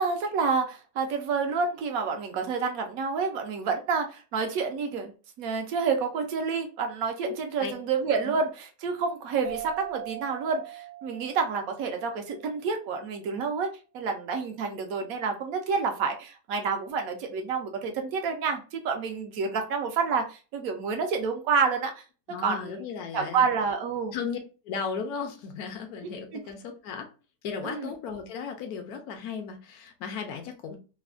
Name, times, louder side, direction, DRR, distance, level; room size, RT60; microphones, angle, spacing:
voice 1, 0.0-5.1 5.4-13.7 13.9-22.0 22.4-22.8 23.1-24.1 26.0-26.1 27.6-27.9, right 5 dB, 70° right, 4 dB, 0.9 m, -29 dB
sound 1, 9.4-12.7, right 14 dB, 45° right, 0.7 m, -41 dB
voice 2, 22.3-23.5 24.1-24.4 24.6-27.1 27.4-30.8, left 6 dB, 75° left, 5 dB, 1.0 m, -35 dB
3.1 x 2.1 x 2.4 m, 0.34 s
omnidirectional pair, 1.7 m